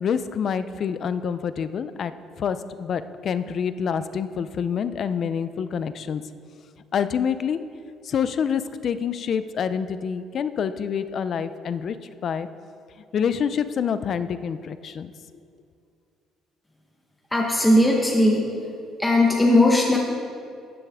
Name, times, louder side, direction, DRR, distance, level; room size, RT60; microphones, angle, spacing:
voice 1, 0.0-2.1 2.4-6.2 6.9-7.6 8.0-12.0 12.2-12.5 13.1-15.1, left 7 dB, 45° left, 13 dB, 0.5 m, -27 dB
voice 2, 17.3-18.5 19.0-20.0, left 1 dB, 10° left, -2 dB, 1.1 m, -18 dB
14.0 x 10.0 x 3.6 m, 2.4 s
cardioid pair, 130°, 0 cm